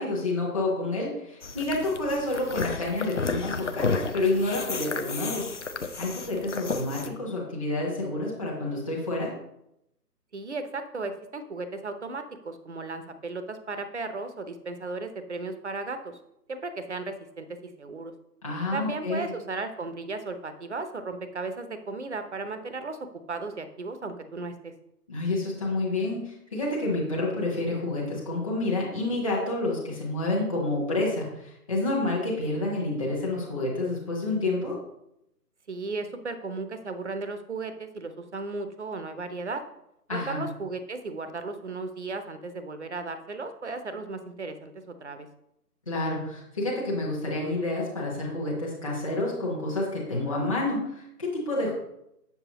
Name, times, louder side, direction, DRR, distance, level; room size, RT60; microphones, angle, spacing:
voice 1, 0.0-5.4 6.0-9.3 18.4-19.3 25.1-34.8 40.1-40.4 45.9-51.7, left 2 dB, 20° left, -5 dB, 1.1 m, -29 dB
sound 1, 1.4-7.1, left 4 dB, 50° left, 0.5 m, -32 dB
voice 2, 10.3-16.2 16.5-18.1 18.7-23.0 23.3-24.7 35.7-39.6 40.1-45.3, right 3 dB, 45° right, 9 dB, 0.7 m, -35 dB
7.6 x 7.0 x 2.9 m, 0.81 s
hypercardioid pair, 175°, 48 cm